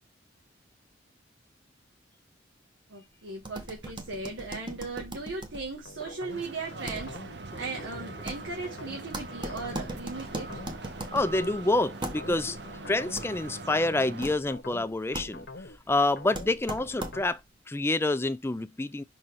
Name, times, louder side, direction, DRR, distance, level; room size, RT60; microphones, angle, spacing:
voice 1, 2.9-7.2 7.5-10.6, right 3 dB, 80° right, 1.5 m, -37 dB
sound 1, 3.4-17.5, right 1 dB, 25° right, 1.0 m, -41 dB
sound 2, 5.9-17.3, left 2 dB, 55° left, 1.0 m, -45 dB
sound 3, 6.3-14.4, right 3 dB, 60° right, 0.8 m, -43 dB
voice 2, 11.1-17.4 17.7-19.0, left 2 dB, 10° left, 0.4 m, -28 dB
5.6 x 4.2 x 4.5 m
head